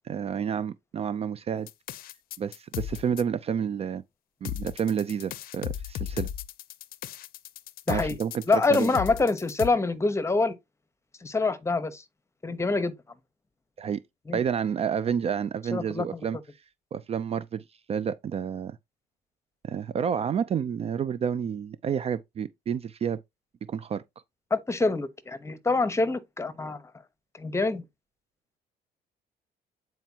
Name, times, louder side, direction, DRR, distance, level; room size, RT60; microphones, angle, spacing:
voice 1, 0.0-1.7 2.4-4.0 4.4-6.3 7.9-8.9 13.8-14.0 14.3-16.4 16.9-18.8 19.6-23.2 23.7-24.0, right 7 dB, 35° right, 0.4 m, -30 dB
sound 1, 1.7-3.2 4.4-9.7, left 11 dB, 60° left, 0.5 m, -36 dB
voice 2, 8.5-10.6 11.2-12.0 12.4-12.9 14.3-14.4 15.7-16.2 24.5-26.8 27.4-27.8, left 3 dB, 15° left, 1.0 m, -25 dB
9.1 x 4.5 x 2.8 m
cardioid pair, 110°, 17 cm